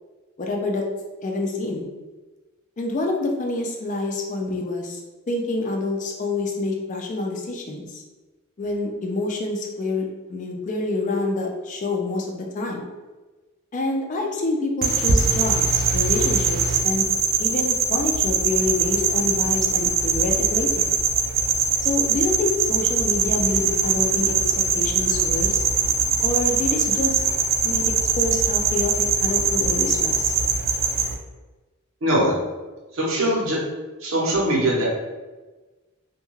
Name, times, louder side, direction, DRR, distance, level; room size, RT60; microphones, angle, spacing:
voice 1, 0.4-0.8 1.2-1.9 2.8-5.0 5.3-8.0 8.6-12.8 13.7-17.1 17.4-20.9 21.8-24.3 24.7-25.6 26.2-27.2 27.6-30.3, left 2 dB, 40° left, 1 dB, 0.4 m, -27 dB
sound 1, 14.8-31.1, right 5 dB, 45° right, 0.3 m, -22 dB
voice 2, 32.0-32.3 32.9-33.6 34.0-34.8, right 1 dB, 90° right, -4 dB, 0.8 m, -21 dB
2.3 x 2.2 x 3.0 m, 1.2 s
head